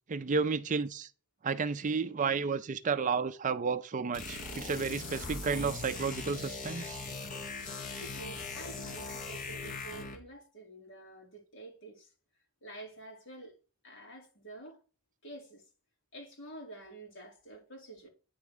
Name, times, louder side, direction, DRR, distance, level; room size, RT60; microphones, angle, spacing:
voice 1, 0.1-1.1 1.4-7.0, right 5 dB, 35° right, 0.4 m, -32 dB
sound 1, 4.1-10.3, left 3 dB, 35° left, 1.2 m, -40 dB
voice 2, 8.0-12.1 12.6-13.6 13.8-14.8 15.2-15.6 16.1-18.1, right 2 dB, 55° left, 2.7 m, -49 dB
9.3 x 3.6 x 6.6 m
head